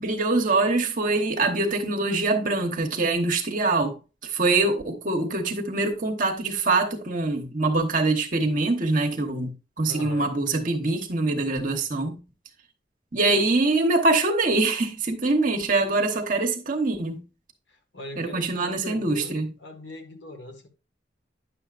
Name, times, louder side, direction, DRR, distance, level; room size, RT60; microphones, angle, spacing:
voice 1, 0.0-4.0 4.2-12.2 13.1-17.2 18.2-19.5, right 3 dB, 50° right, 1.0 m, -24 dB
voice 2, 9.9-10.3 17.7-20.7, left 2 dB, 90° left, 1.7 m, -40 dB
9.8 x 7.0 x 2.5 m
head